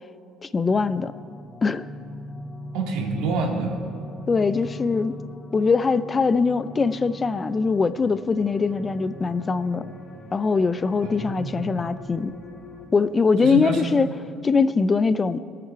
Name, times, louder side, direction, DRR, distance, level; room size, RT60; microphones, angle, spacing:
voice 1, 0.4-1.1 1.6-1.9 4.3-5.2 5.5-9.8 10.3-12.3 12.9-14.1 14.4-15.4, left 4 dB, 20° left, 14 dB, 0.4 m, -22 dB
sound 1, 0.6-12.9, left 1 dB, 45° left, 3.9 m, -41 dB
voice 2, 2.7-3.8 11.0-11.7 13.4-13.9, right 3 dB, 90° right, 0 dB, 2.6 m, -27 dB
22.5 x 8.8 x 4.6 m, 2.6 s
cardioid pair, 160°, 0 cm